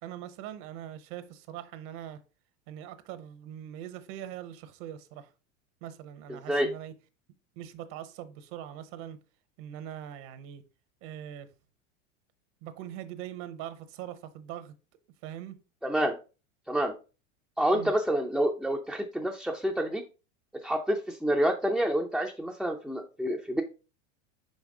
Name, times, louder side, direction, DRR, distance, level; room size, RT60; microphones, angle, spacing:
voice 1, 0.0-2.2 2.7-5.3 5.8-6.9 7.6-9.2 9.6-10.6 11.0-11.5 12.6-14.7 15.2-15.6 17.7-17.9, right 11 dB, 55° right, 0.9 m, -42 dB
voice 2, 6.3-6.7 15.8-16.2 16.7-16.9 17.6-20.0 20.6-23.6, equal, ahead, 0.4 m, -28 dB
5.6 x 5.3 x 3.6 m
supercardioid pair, 120°, 38 cm